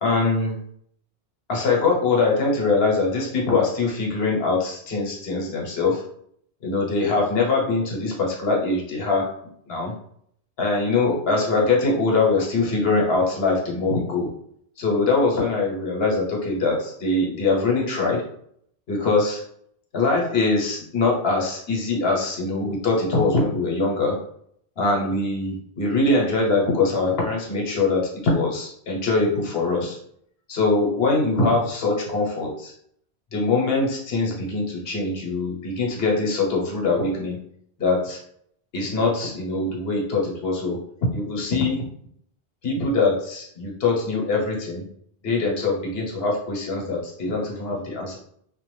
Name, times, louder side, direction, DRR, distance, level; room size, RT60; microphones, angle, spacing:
voice 1, 0.0-0.6 1.5-6.0 6.6-9.3 9.7-9.9 10.6-14.3 14.8-18.2 18.9-19.4 19.9-24.2 24.8-30.0 30.5-32.7 33.3-37.4 37.8-38.2 38.7-40.8 41.1-41.8 42.6-44.9 45.2-48.2, left 3 dB, 70° left, -2 dB, 1.0 m, -23 dB
2.4 x 2.1 x 3.1 m, 0.66 s
omnidirectional pair, 1.1 m